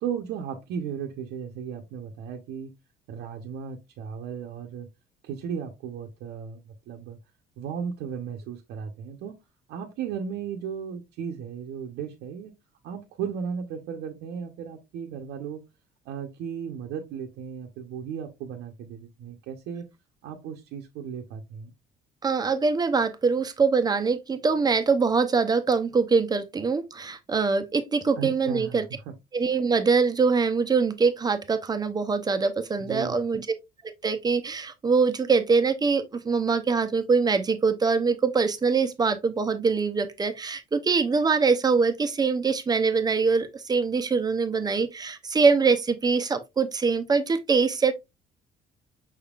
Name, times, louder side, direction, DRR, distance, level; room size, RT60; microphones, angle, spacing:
voice 1, 0.0-2.7 3.1-4.9 5.2-7.2 7.6-9.4 9.7-12.5 12.8-15.6 16.0-19.9 20.2-21.7 28.2-28.8 32.8-33.2, right 7 dB, 85° right, 0.9 m, -35 dB
voice 2, 22.2-28.9 29.3-33.5 33.8-47.9, right 4 dB, 25° right, 0.7 m, -23 dB
5.5 x 3.5 x 2.4 m
cardioid pair, 110°, 17 cm